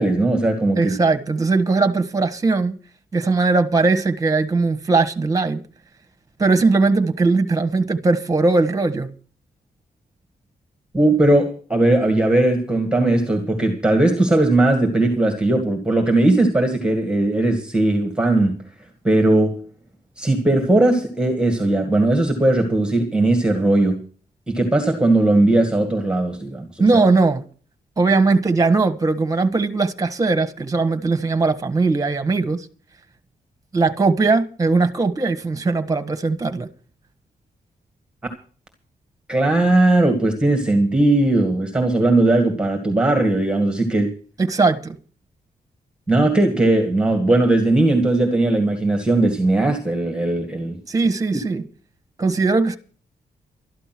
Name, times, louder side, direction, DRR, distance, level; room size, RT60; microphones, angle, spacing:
voice 1, 0.0-1.0 10.9-18.6 19.0-19.6 20.2-24.0 24.5-26.9 39.3-44.1 46.1-50.8, right 2 dB, 5° right, 2.0 m, -18 dB
voice 2, 0.8-2.8 3.1-5.6 6.4-9.1 26.8-27.4 28.0-32.7 33.7-36.7 44.4-45.0 50.9-51.6 52.2-52.8, right 3 dB, 20° right, 1.4 m, -19 dB
13.0 x 11.5 x 6.1 m
wide cardioid pair, 170°, 16 cm